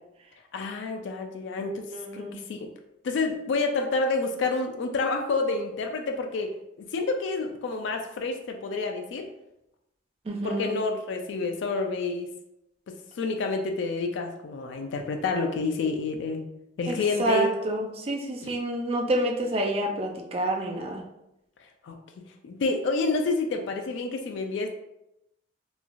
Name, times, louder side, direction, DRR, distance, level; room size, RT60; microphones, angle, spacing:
voice 1, 0.5-2.7 3.0-6.5 6.8-9.3 10.4-12.3 12.9-16.5 16.8-17.5 21.8-22.0 22.4-24.7, left 3 dB, 70° left, 4 dB, 0.3 m, -29 dB
voice 2, 1.9-2.4 10.3-10.7 16.9-21.0, right 1 dB, 30° right, 1 dB, 0.3 m, -28 dB
3.0 x 2.3 x 2.5 m, 0.86 s
head